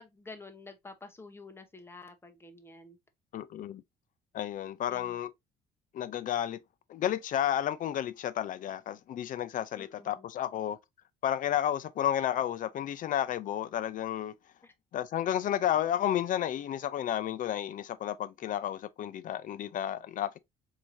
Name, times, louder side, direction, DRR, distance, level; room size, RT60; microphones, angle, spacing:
voice 1, 0.0-3.0 4.9-5.2 9.7-10.3 14.6-14.7, left 3 dB, 15° left, 0.9 m, -49 dB
voice 2, 3.3-3.8 4.3-5.3 5.9-6.6 6.9-10.8 11.2-14.3 14.9-20.4, left 11 dB, 50° left, 0.5 m, -32 dB
4.5 x 2.8 x 2.6 m
cardioid pair, 110°, 17 cm